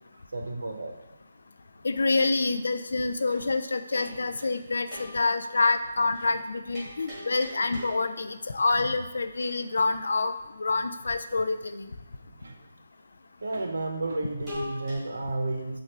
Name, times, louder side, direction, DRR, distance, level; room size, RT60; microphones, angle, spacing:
voice 1, 0.3-0.9 3.3-3.5 8.8-9.0 12.2-12.6 13.4-15.8, right 2 dB, 90° right, 3 dB, 0.8 m, -32 dB
voice 2, 1.8-10.3 10.6-11.9, left 3 dB, 70° left, 10 dB, 0.3 m, -27 dB
sound 1, 3.9-4.6 4.9-5.6 6.1-6.3 6.7-8.3 9.3-9.6 13.5-13.7 14.5-15.0, left 1 dB, 5° right, 1.3 m, -41 dB
6.2 x 2.4 x 3.3 m, 0.96 s
hypercardioid pair, 175°, 0 cm